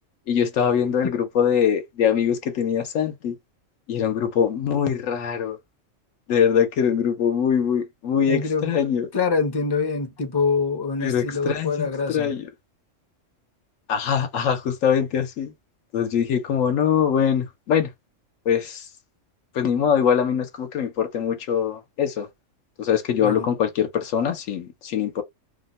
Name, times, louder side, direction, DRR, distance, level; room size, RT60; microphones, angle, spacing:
voice 1, 0.3-3.4 3.9-5.6 6.3-9.1 11.0-12.4 13.9-15.5 15.9-17.9 18.5-18.9 19.5-22.3 22.8-25.2, left 8 dB, 80° left, 1.1 m, -23 dB
voice 2, 8.3-8.9 9.1-12.3 23.2-23.5, left 4 dB, 30° left, 0.5 m, -25 dB
2.8 x 2.1 x 4.0 m
omnidirectional pair, 1.3 m